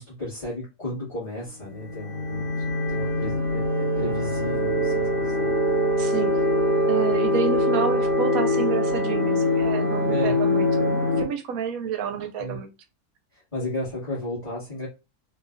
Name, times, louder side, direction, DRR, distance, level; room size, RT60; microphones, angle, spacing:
voice 1, 0.0-5.5 10.1-10.4 12.4-12.6 13.3-14.9, left 2 dB, 20° left, 1.8 m, -34 dB
sound 1, 1.6-11.2, left 1 dB, 50° left, 1.5 m, -23 dB
voice 2, 6.0-6.5 6.9-12.7, right 7 dB, 70° right, 0.9 m, -29 dB
3.9 x 2.6 x 2.5 m
omnidirectional pair, 1.7 m